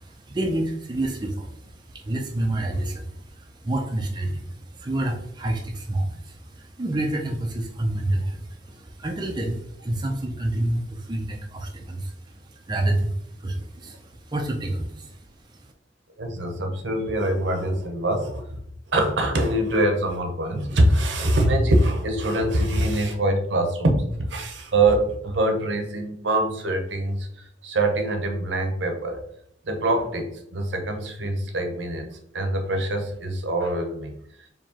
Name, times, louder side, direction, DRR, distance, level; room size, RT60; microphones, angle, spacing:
voice 1, 0.0-15.2 15.6-15.7, right 1 dB, 25° right, 1 dB, 0.5 m, -28 dB
voice 2, 16.2-18.6 18.9-29.2 29.6-34.5, right 1 dB, 70° right, 4 dB, 0.8 m, -24 dB
4.6 x 3.0 x 2.8 m, 0.72 s
head